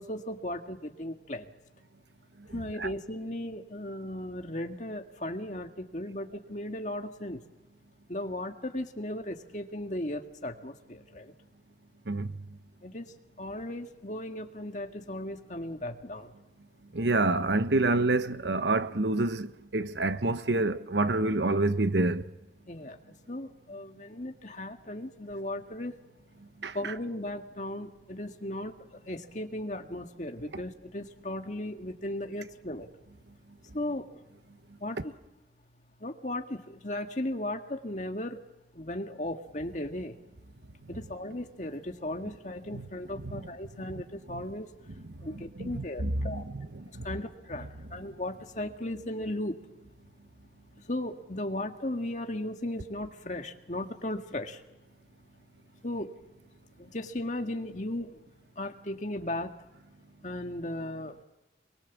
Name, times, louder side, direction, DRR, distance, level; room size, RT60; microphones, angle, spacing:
voice 1, 0.0-1.5 2.5-7.4 8.1-11.3 12.8-16.3 22.7-23.0 23.3-26.0 26.7-28.8 29.1-32.9 33.7-34.1 34.8-35.1 36.0-38.4 38.7-40.2 40.9-44.7 45.2-46.5 47.0-49.6 50.8-54.6 55.8-56.1 56.8-58.2 58.6-59.5 60.2-61.2, left 1 dB, 45° left, 1.9 m, -36 dB
voice 2, 16.9-22.3 26.6-26.9 42.7-42.9 43.2-43.4 44.3-44.4 45.2-47.0, right 2 dB, 80° right, 1.1 m, -28 dB
28.0 x 22.5 x 7.3 m
head